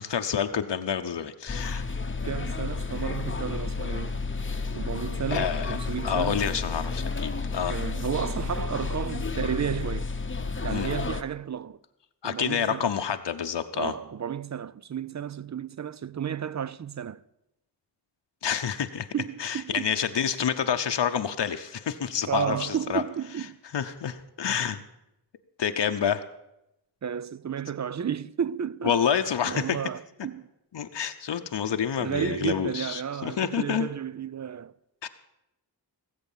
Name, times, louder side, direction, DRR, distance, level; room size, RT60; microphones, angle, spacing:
voice 1, 0.0-1.8 5.3-5.8 6.0-7.8 10.7-10.9 12.2-13.9 18.4-19.1 19.4-23.0 23.7-24.8 25.6-26.2 28.8-29.8 30.7-33.9 35.0-35.1, left 8 dB, 75° left, 0.8 m, -28 dB
sound 1, 1.5-11.2, left 4 dB, 30° left, 0.8 m, -31 dB
voice 2, 2.2-4.2 4.7-6.4 7.7-10.1 10.6-11.8 12.2-12.9 13.7-17.2 19.1-19.9 22.3-23.6 27.0-29.0 29.5-30.5 32.0-34.7, right 8 dB, 45° right, 0.4 m, -32 dB
17.5 x 8.1 x 7.2 m
wide cardioid pair, 110°, 43 cm